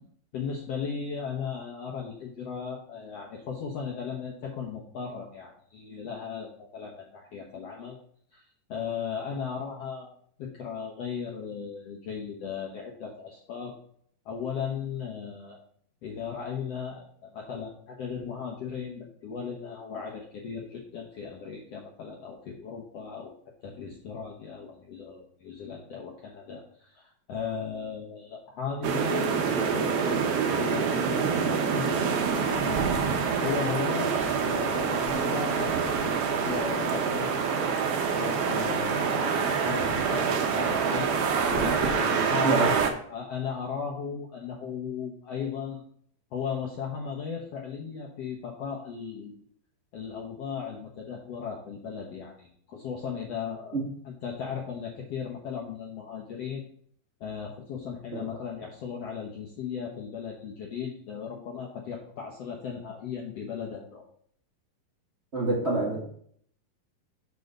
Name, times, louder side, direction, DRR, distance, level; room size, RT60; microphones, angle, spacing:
voice 1, 0.3-8.0 8.3-8.4 8.7-13.7 14.2-15.6 16.0-23.3 23.6-30.2 30.5-37.3 38.2-41.1 41.5-42.8 43.1-45.8 46.3-49.3 49.9-53.8 54.0-56.6 57.2-64.0, left 6 dB, 70° left, -2 dB, 1.6 m, -36 dB
sound 1, 28.8-42.9, right 6 dB, 85° right, 1.3 m, -26 dB
voice 2, 65.3-66.0, right 2 dB, 35° right, -6 dB, 1.0 m, -26 dB
7.5 x 3.9 x 6.5 m, 0.62 s
omnidirectional pair, 4.1 m